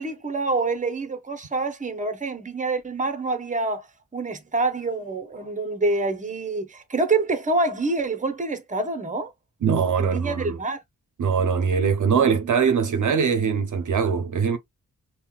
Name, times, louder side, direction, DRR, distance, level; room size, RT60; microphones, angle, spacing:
voice 1, 0.0-3.9 4.1-9.3 10.0-10.8, right 3 dB, 20° right, 0.8 m, -26 dB
voice 2, 9.6-10.6 11.2-14.6, right 6 dB, 65° right, 0.6 m, -22 dB
5.4 x 2.2 x 2.3 m
wide cardioid pair, 85°, 34 cm